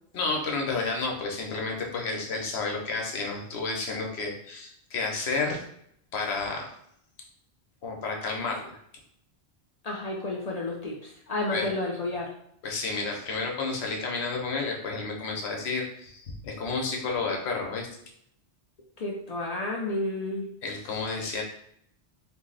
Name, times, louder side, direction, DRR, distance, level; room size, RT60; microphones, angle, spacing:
voice 1, 0.1-5.6 6.1-6.7 7.8-8.7 11.5-11.7 12.6-17.9 20.6-21.4, left 3 dB, 80° left, 0 dB, 0.9 m, -31 dB
voice 2, 9.8-12.3 19.0-20.5, left 2 dB, 50° left, -1 dB, 0.5 m, -31 dB
2.6 x 2.0 x 3.8 m, 0.71 s
omnidirectional pair, 1.1 m